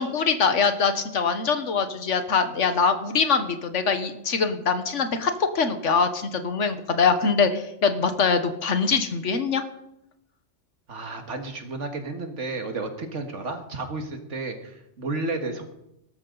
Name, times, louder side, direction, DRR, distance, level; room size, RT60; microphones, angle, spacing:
voice 1, 0.0-9.6, left 5 dB, 80° left, 9 dB, 1.5 m, -23 dB
voice 2, 10.9-15.7, right 3 dB, 85° right, 5 dB, 2.1 m, -32 dB
17.5 x 13.5 x 4.0 m, 0.84 s
omnidirectional pair, 1.2 m